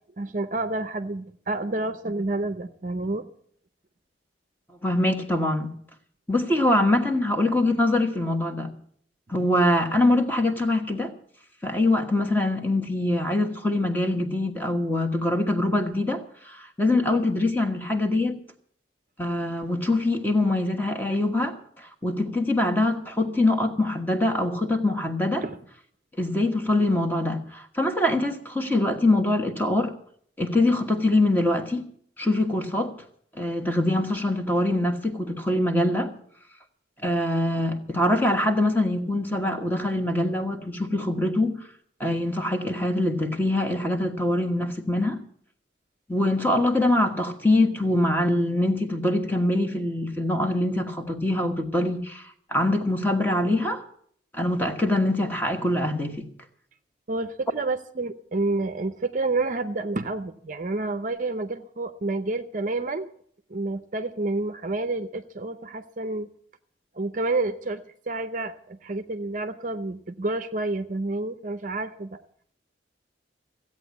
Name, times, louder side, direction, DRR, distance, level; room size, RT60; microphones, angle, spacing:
voice 1, 0.2-3.3 25.4-25.6 57.1-63.1 63.5-66.3 66.9-72.2, right 2 dB, 40° right, 0.6 m, -29 dB
voice 2, 4.8-5.7 6.3-8.7 9.3-11.1 11.6-18.4 19.2-25.4 26.2-29.9 30.4-31.8 32.2-32.9 33.4-36.1 37.0-41.6 42.0-45.2 46.1-53.8 54.3-56.3, left 1 dB, 10° left, 1.3 m, -24 dB
15.5 x 8.6 x 8.2 m
head